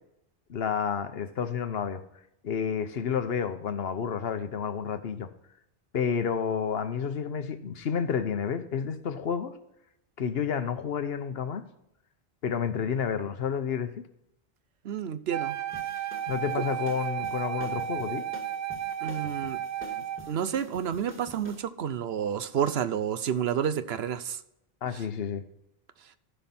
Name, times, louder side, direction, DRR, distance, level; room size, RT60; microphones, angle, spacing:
voice 1, 0.5-2.0 2.4-5.3 5.9-9.5 10.2-11.6 12.4-13.9 16.3-18.3 24.8-25.4, left 7 dB, 75° left, 10 dB, 1.1 m, -30 dB
voice 2, 14.8-15.6 19.0-19.6 19.9-24.4, right 8 dB, 80° right, 13 dB, 1.0 m, -30 dB
Wind instrument woodwind instrument, 15.3-20.3, right 11 dB, 50° right, 0.6 m, -33 dB
sound 1, 15.7-21.6, left 1 dB, 10° right, 2.0 m, -47 dB
14.5 x 5.7 x 4.2 m, 0.83 s
omnidirectional pair, 1.0 m